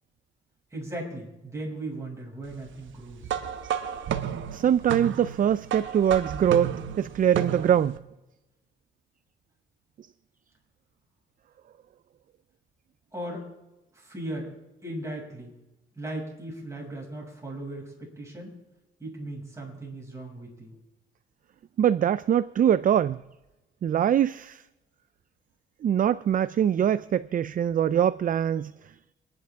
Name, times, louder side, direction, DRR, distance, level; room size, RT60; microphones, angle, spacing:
voice 1, 0.7-3.3 13.1-13.5 13.9-14.5 14.8-15.5 15.9-18.5 19.0-20.8, right 1 dB, 15° right, 6.7 m, -37 dB
sound 1, 3.2-8.0, right 9 dB, 75° right, 1.1 m, -32 dB
voice 2, 4.5-7.9 21.8-23.2 23.8-24.6 25.8-28.7, right 9 dB, 45° right, 0.5 m, -23 dB
28.5 x 10.5 x 3.6 m
cardioid pair, 90°, 20 cm